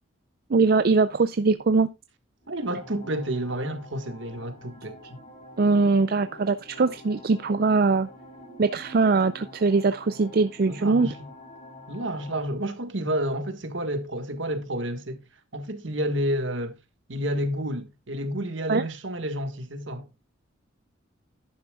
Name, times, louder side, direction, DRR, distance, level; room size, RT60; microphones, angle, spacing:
voice 1, 0.5-1.9 5.6-8.1 8.6-11.1 18.7-18.8, right 4 dB, 50° right, 0.4 m, -22 dB
sound 1, 2.4-12.4, left 1 dB, 35° left, 5.6 m, -47 dB
voice 2, 2.5-5.2 10.6-11.3 11.9-15.2 15.5-16.8 17.1-20.1, right 1 dB, 70° right, 1.5 m, -30 dB
11.0 x 9.9 x 2.3 m
head